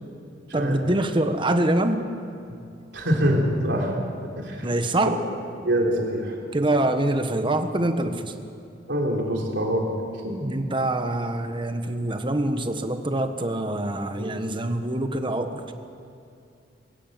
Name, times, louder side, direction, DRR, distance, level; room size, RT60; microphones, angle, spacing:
voice 1, 0.5-2.0 4.6-5.2 6.5-8.3 10.4-15.6, right 1 dB, 25° right, 7 dB, 1.3 m, -25 dB
voice 2, 2.9-3.9 4.4-4.7 5.6-6.4 8.9-9.9 10.2-10.4 14.2-14.4, equal, 70° right, -1 dB, 3.9 m, -24 dB
22.5 x 15.0 x 9.1 m, 2.5 s
head